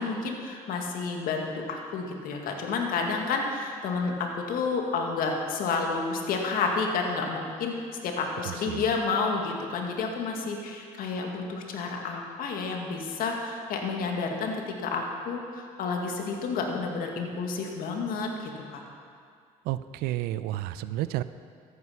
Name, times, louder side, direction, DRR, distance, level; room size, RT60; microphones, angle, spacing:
voice 1, 0.0-7.8 8.0-18.8, left 4 dB, 70° left, 2 dB, 2.0 m, -30 dB
voice 2, 8.4-8.9 19.6-21.2, right 14 dB, 80° right, 14 dB, 0.5 m, -31 dB
13.5 x 9.5 x 5.7 m, 2.3 s
supercardioid pair, 75°, 16 cm